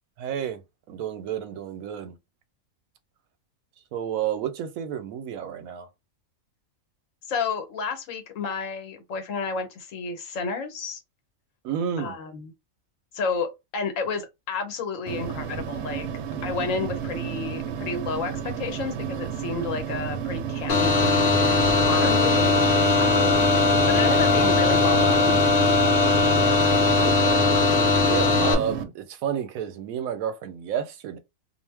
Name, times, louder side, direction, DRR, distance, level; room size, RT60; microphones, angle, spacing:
voice 1, 0.2-0.6 0.9-2.2 3.9-5.9 11.6-12.2 23.1-23.4 26.4-26.6 27.0-27.4 28.0-31.2, right 9 dB, 90° right, 1.0 m, -31 dB
voice 2, 7.3-11.0 12.0-12.5 13.1-16.1 16.4-21.2 21.8-22.6 23.0-23.4 23.9-25.4, left 5 dB, 75° left, 1.1 m, -31 dB
sound 1, 15.1-28.8, right 8 dB, 65° right, 0.7 m, -32 dB
sound 2, 20.7-28.5, left 3 dB, 50° left, 0.8 m, -20 dB
2.5 x 2.0 x 3.3 m
omnidirectional pair, 1.4 m